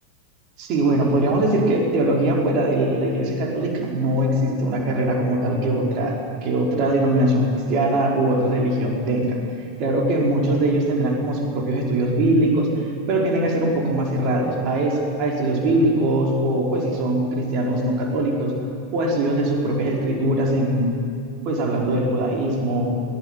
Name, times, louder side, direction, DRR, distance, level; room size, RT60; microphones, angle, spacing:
voice 1, 0.6-9.4 9.8-12.7 13.1-18.5 18.9-20.9 21.4-22.8, right 1 dB, 40° right, 0 dB, 5.3 m, -21 dB
22.5 x 21.5 x 9.7 m, 2.7 s
figure-of-eight pair, 90°, 0 cm